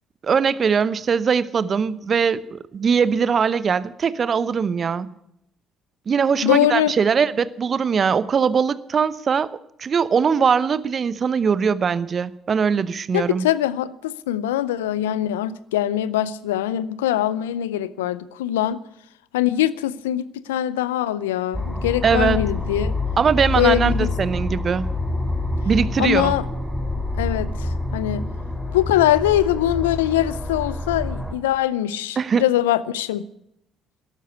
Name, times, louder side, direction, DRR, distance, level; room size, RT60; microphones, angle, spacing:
voice 1, 0.2-5.1 6.1-9.5 9.8-13.4 22.0-22.4 23.2-24.9 25.6-26.3 32.2-32.5, right 6 dB, 45° right, 0.8 m, -21 dB
voice 2, 6.4-6.9 13.1-18.8 19.3-23.0 23.6-24.1 26.0-26.5 27.2-28.3 28.7-33.3, left 13 dB, 85° left, 0.5 m, -22 dB
sound 1, 21.5-31.3, left 2 dB, 5° left, 3.0 m, -27 dB
13.5 x 12.0 x 8.3 m
hypercardioid pair, 50°, 0 cm